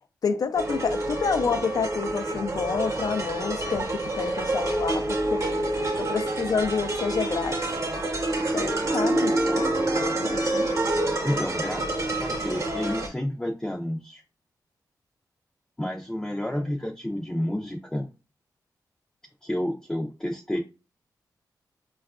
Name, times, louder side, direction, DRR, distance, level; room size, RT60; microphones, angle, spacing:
voice 1, 0.2-5.6 6.0-7.6 8.5-10.7 16.5-16.8, left 6 dB, 60° left, 0.4 m, -29 dB
sound 1, 0.5-13.1, right 2 dB, 50° right, 0.9 m, -27 dB
voice 2, 11.2-14.2 15.8-18.1 19.4-20.6, left 1 dB, 10° left, 0.5 m, -30 dB
4.5 x 2.4 x 2.3 m
cardioid pair, 80°, 7 cm